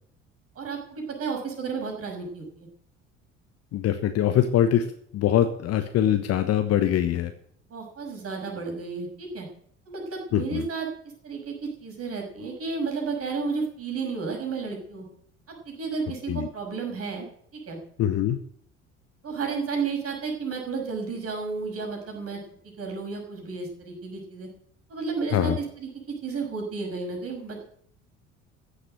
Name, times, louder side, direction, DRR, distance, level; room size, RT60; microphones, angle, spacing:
voice 1, 0.5-2.7 7.7-9.5 9.9-10.9 11.2-15.1 15.5-17.3 17.5-17.8 19.2-24.5 24.9-27.6, right 4 dB, 40° right, 1 dB, 6.1 m, -32 dB
voice 2, 3.7-4.8 5.1-7.3 10.3-10.6 16.3-16.5 18.0-18.4 25.3-25.6, left 11 dB, 45° left, 8 dB, 1.2 m, -23 dB
15.0 x 7.9 x 7.8 m, 0.65 s
figure-of-eight pair, 55°, 36 cm